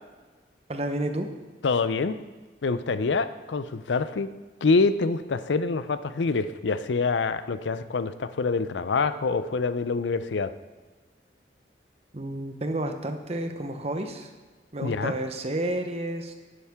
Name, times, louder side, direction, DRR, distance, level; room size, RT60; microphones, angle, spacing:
voice 1, 0.7-1.3 12.1-14.3 14.7-16.3, right 1 dB, 35° right, 6 dB, 0.9 m, -30 dB
voice 2, 1.6-2.2 2.6-4.3 4.6-10.5 14.8-15.1, left 4 dB, 90° left, 13 dB, 0.5 m, -26 dB
11.5 x 10.0 x 3.6 m, 1.3 s
head